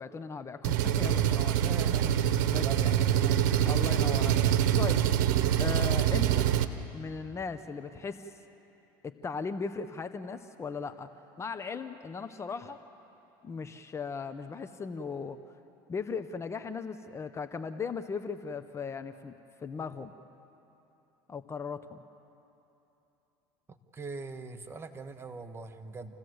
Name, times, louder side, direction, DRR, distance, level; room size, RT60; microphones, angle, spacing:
voice 1, 0.0-2.0 2.4-2.9 3.6-4.4 4.8-5.1 5.6-6.5 6.9-8.3 9.0-11.1 11.4-12.8 13.4-15.4 15.9-19.3 19.6-20.1 21.3-22.0, left 5 dB, 25° left, 10 dB, 0.9 m, -38 dB
Engine, 0.6-6.7, right 10 dB, 80° right, 1.0 m, -25 dB
voice 2, 1.6-2.2 2.5-3.7 23.9-26.2, right 4 dB, 25° right, 7 dB, 1.4 m, -42 dB
28.5 x 15.5 x 8.0 m, 3.0 s
supercardioid pair, 95°, 10 cm